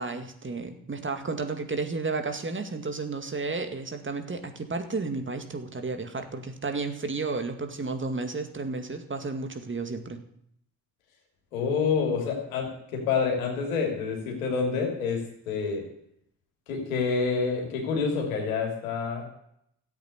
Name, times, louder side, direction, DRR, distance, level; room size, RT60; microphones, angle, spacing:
voice 1, 0.0-10.2, right 3 dB, 30° right, 6 dB, 2.2 m, -32 dB
voice 2, 11.5-15.8 16.7-19.2, left 5 dB, 80° left, 1 dB, 3.0 m, -28 dB
14.0 x 8.1 x 8.1 m, 0.72 s
figure-of-eight pair, 45°, 42 cm